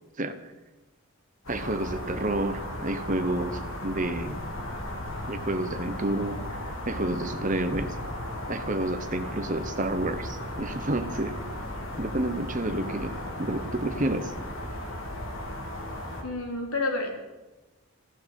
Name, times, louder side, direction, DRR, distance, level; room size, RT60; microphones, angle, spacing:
sound 1, 1.4-16.2, left 1 dB, 70° left, 3.2 m, -36 dB
voice 1, 1.5-4.4 5.3-6.6 6.8-8.0 8.5-11.4 12.0-14.3, right 1 dB, 35° right, 10 dB, 1.1 m, -30 dB
voice 2, 16.2-17.2, left 2 dB, 90° left, 2 dB, 3.7 m, -29 dB
15.0 x 11.5 x 8.3 m, 1.2 s
head